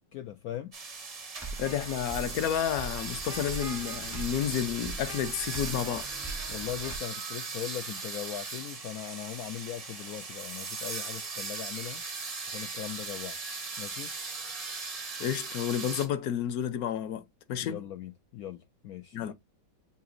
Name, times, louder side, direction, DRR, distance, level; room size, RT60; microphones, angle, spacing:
voice 1, 0.1-0.8 6.5-12.0 12.5-13.4 13.8-14.2 17.6-19.3, left 11 dB, 85° left, 0.8 m, -39 dB
sound 1, 0.7-16.1, right 4 dB, 60° right, 0.4 m, -38 dB
sound 2, 1.4-7.0, right 3 dB, ahead, 0.5 m, -41 dB
voice 2, 1.6-6.1 15.2-17.8 19.1-19.3, left 10 dB, 65° left, 1.0 m, -31 dB
6.9 x 2.8 x 2.5 m
omnidirectional pair, 2.1 m